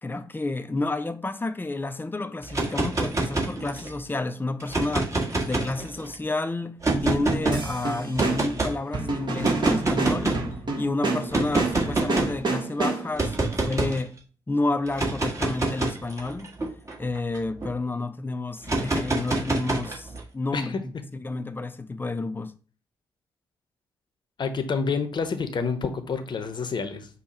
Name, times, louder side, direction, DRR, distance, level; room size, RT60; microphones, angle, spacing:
voice 1, 0.0-5.1 5.4-14.2 14.5-16.5 17.0-22.5, left 2 dB, 20° left, 0.6 m, -30 dB
sound 1, 2.4-4.0 4.6-6.1 6.8-7.6 8.2-8.7 9.4-10.5 11.3-12.4 13.2-14.0 14.9-17.7 18.6-20.2, right 2 dB, 30° right, 1.6 m, -26 dB
sound 2, 7.5-13.3, right 3 dB, 45° right, 1.6 m, -28 dB
voice 2, 24.4-27.1, left 5 dB, 45° left, 0.8 m, -28 dB
5.3 x 2.3 x 4.4 m
hypercardioid pair, 40°, 11 cm